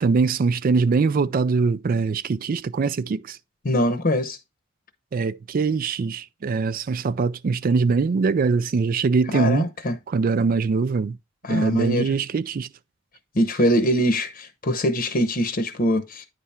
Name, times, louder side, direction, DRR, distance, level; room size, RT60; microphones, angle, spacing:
voice 1, 0.0-3.4 5.1-9.7 10.1-11.2 11.5-12.7, right 4 dB, 45° right, 0.4 m, -22 dB
voice 2, 3.6-4.4 9.3-10.0 11.4-12.1 13.3-16.3, equal, 45° left, 0.9 m, -22 dB
9.5 x 3.5 x 4.2 m
head